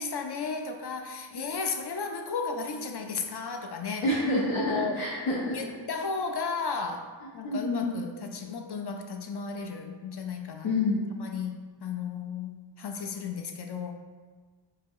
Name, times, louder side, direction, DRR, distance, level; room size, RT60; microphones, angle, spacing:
voice 1, 0.0-4.1 4.5-5.0 5.5-10.7 11.2-11.5 11.8-12.5 12.8-13.9, left 5 dB, 60° left, 4 dB, 0.6 m, -34 dB
voice 2, 4.0-5.5 7.4-7.9 10.6-11.0, left 2 dB, 80° left, -6 dB, 0.8 m, -27 dB
4.1 x 2.8 x 3.6 m, 1.4 s
wide cardioid pair, 55°, 47 cm